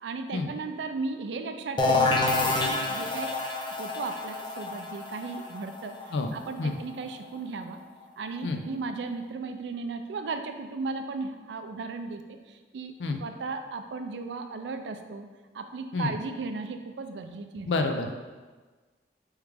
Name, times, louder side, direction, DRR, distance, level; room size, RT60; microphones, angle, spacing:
voice 1, 0.0-3.4 3.8-5.9 6.3-7.8 8.2-12.2 12.5-15.3 15.5-17.7, right 4 dB, 80° right, 7 dB, 0.4 m, -36 dB
sound 1, 1.8-7.4, left 3 dB, 25° left, 0.4 m, -28 dB
voice 2, 17.6-18.2, left 3 dB, 85° left, 6 dB, 0.4 m, -28 dB
4.8 x 3.1 x 3.4 m, 1.4 s
head